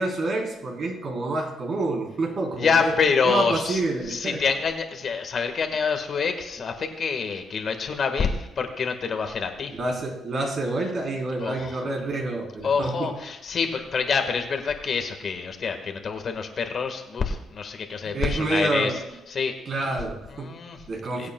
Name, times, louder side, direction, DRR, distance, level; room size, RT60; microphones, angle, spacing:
voice 1, 0.0-3.0 3.2-4.4 9.8-13.1 18.1-19.0 19.7-20.6 20.9-21.3, right 2 dB, 50° right, 0 dB, 3.6 m, -28 dB
voice 2, 2.6-3.8 4.1-9.7 11.4-11.8 12.6-19.0 19.3-20.0 20.3-20.8 21.2-21.3, left 5 dB, 50° left, 5 dB, 1.5 m, -26 dB
22.0 x 8.5 x 2.3 m, 0.96 s
cardioid pair, 90°, 0 cm